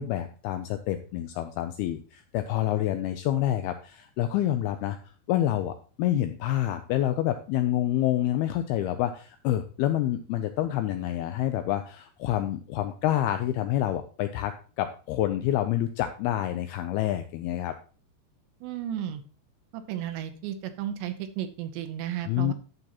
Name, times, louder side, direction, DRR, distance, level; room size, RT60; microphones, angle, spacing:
voice 1, 0.0-5.0 5.3-17.7 22.3-22.5, left 12 dB, 85° left, 8 dB, 2.2 m, -28 dB
voice 2, 18.6-19.2 19.7-22.5, right 11 dB, 80° right, 8 dB, 3.1 m, -33 dB
11.0 x 7.9 x 2.9 m, 0.38 s
omnidirectional pair, 5.0 m